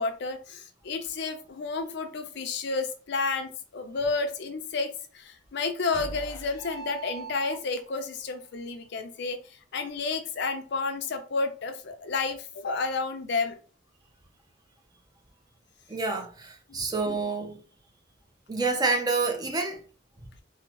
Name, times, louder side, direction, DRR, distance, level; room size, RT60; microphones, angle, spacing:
voice 1, 0.0-13.6 16.7-16.8, left 4 dB, 65° left, 0.5 m, -31 dB
sound 1, 5.9-8.0, right 4 dB, 20° left, 0.7 m, -40 dB
voice 2, 15.9-17.6 18.5-19.8, right 3 dB, 20° right, 0.5 m, -28 dB
3.5 x 2.0 x 3.0 m
head